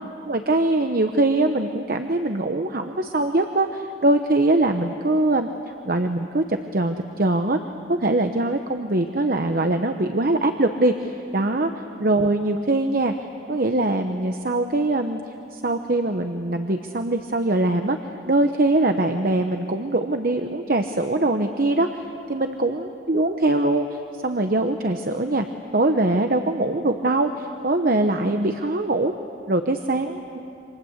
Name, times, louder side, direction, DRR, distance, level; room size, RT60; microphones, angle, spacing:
voice 1, 0.2-5.5 5.8-7.6 7.9-11.7 12.0-13.1 13.5-15.2 15.5-18.0 18.3-25.5 25.7-29.1 29.5-30.4, right 2 dB, 50° right, 6 dB, 1.0 m, -22 dB
28.0 x 26.0 x 8.1 m, 2.7 s
head